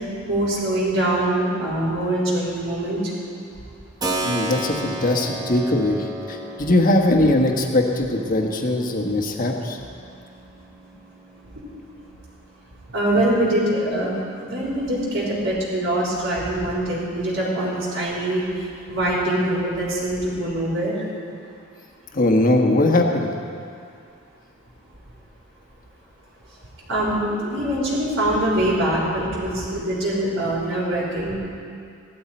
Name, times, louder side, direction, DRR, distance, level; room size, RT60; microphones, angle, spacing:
voice 1, 0.3-3.0 12.9-18.4 18.9-20.9 26.9-31.3, right 1 dB, 65° right, -7 dB, 3.8 m, -23 dB
Keyboard (musical), 4.0-12.6, right 2 dB, 20° right, 1.0 m, -34 dB
voice 2, 4.2-6.0 6.3-9.8 22.1-23.3, left 1 dB, 40° left, 2 dB, 1.3 m, -20 dB
16.0 x 12.5 x 4.4 m, 2.4 s
head